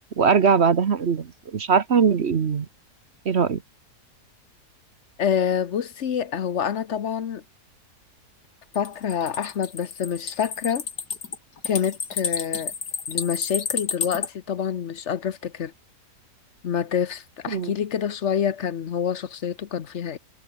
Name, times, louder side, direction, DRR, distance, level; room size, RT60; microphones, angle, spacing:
voice 1, 0.2-2.7 3.2-3.6 17.5-17.7, right 6 dB, 45° right, 1.2 m, -21 dB
voice 2, 5.2-7.4 8.7-10.8 11.6-12.7 13.1-15.7 16.6-20.2, left 8 dB, 50° left, 1.1 m, -27 dB
sound 1, 8.7-14.3, left 6 dB, 85° left, 2.7 m, -30 dB
omnidirectional pair, 1.7 m